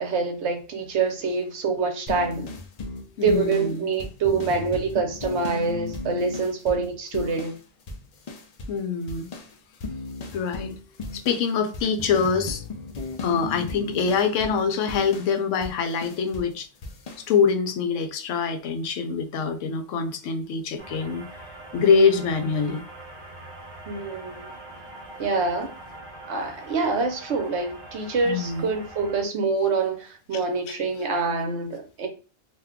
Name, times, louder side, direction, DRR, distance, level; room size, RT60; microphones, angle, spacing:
voice 1, 0.0-2.5 3.2-7.6 23.9-24.5 25.2-25.7 26.3-32.1, right 4 dB, 65° right, 0.9 m, -26 dB
sound 1, 2.1-7.6 7.9-8.8 9.1-16.5 16.8-17.3, left 3 dB, 60° left, 0.4 m, -36 dB
voice 2, 3.2-3.9 8.7-9.3 10.3-10.7 11.1-12.6 13.2-16.7 17.3-21.4 21.7-22.8 28.2-28.7, left 5 dB, 80° left, 0.9 m, -24 dB
sound 2, 20.8-29.2, right 1 dB, 30° right, 0.7 m, -43 dB
2.5 x 2.2 x 3.5 m
omnidirectional pair, 1.3 m